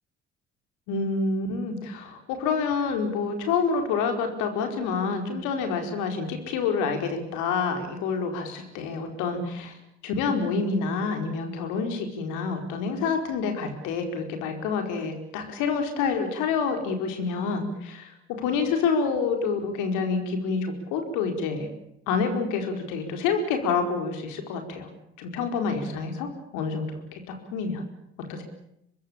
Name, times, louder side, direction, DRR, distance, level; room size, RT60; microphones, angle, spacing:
voice 1, 0.9-9.7 10.0-18.1 18.4-21.7 22.1-24.9 25.2-26.3 26.5-27.8 28.3-28.4, left 5 dB, 70° left, 5 dB, 4.8 m, -28 dB
25.0 x 21.0 x 8.8 m, 0.78 s
hypercardioid pair, 55°, 32 cm